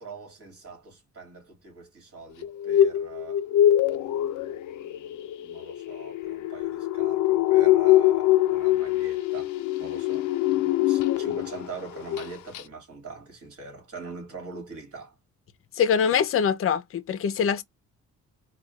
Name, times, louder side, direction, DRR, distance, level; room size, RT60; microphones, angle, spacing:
voice 1, 0.0-3.4 3.9-9.5 9.8-15.1, right 4 dB, 50° right, 2.3 m, -43 dB
sound 1, 2.4-11.7 12.0-12.3 12.5-12.6, left 13 dB, 85° left, 0.6 m, -23 dB
voice 2, 15.8-17.6, left 7 dB, 45° left, 0.6 m, -23 dB
4.1 x 2.4 x 2.4 m
cardioid pair, 90°, 30 cm